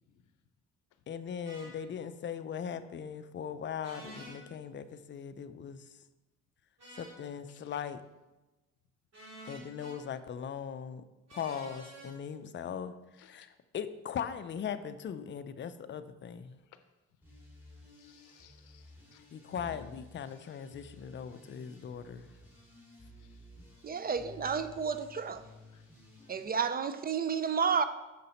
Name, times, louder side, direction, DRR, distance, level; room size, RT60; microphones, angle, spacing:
voice 1, 1.1-5.8 6.9-8.0 9.5-11.0 11.3-16.6 19.3-22.3, left 7 dB, 40° left, 12 dB, 0.4 m, -39 dB
sound 1, 1.5-1.7 3.8-4.4 6.8-7.2 9.1-10.0 11.3-12.1, equal, 60° right, 2.5 m, -48 dB
sound 2, 17.2-26.4, left 2 dB, 5° right, 2.1 m, -54 dB
voice 2, 18.0-19.9 25.7-25.8, left 7 dB, 80° left, 10 dB, 0.6 m, -58 dB
voice 3, 23.8-25.4 26.3-27.8, right 6 dB, 30° right, 12 dB, 0.4 m, -31 dB
6.5 x 5.4 x 4.1 m, 1.1 s
cardioid pair, 90°, 30 cm